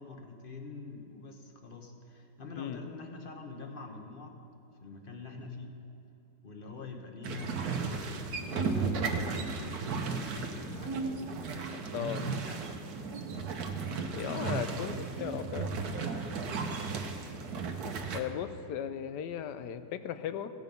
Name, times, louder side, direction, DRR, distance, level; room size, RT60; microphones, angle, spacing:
voice 1, 0.0-4.4 4.8-5.7 6.4-11.1 11.8-12.8 14.2-15.4, left 3 dB, 35° left, 3 dB, 1.1 m, -45 dB
sound 1, 7.2-18.2, right 4 dB, 65° right, 1.4 m, -35 dB
voice 2, 11.9-12.2 14.1-15.7 18.1-20.5, left 9 dB, 80° left, 11 dB, 1.2 m, -37 dB
16.5 x 8.1 x 5.3 m, 2.8 s
omnidirectional pair, 1.8 m